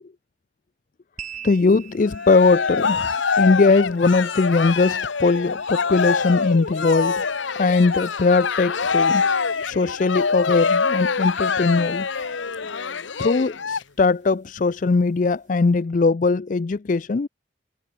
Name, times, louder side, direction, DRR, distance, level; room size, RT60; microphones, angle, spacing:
sound 1, 1.2-15.8, right 8 dB, 40° right, 2.3 m, -48 dB
voice 1, 1.4-3.1 3.4-7.2 7.6-9.2 9.6-12.1 13.2-17.3, left 3 dB, 45° left, 0.4 m, -20 dB
Cheering, 2.0-13.8, left 5 dB, 85° left, 1.0 m, -24 dB
head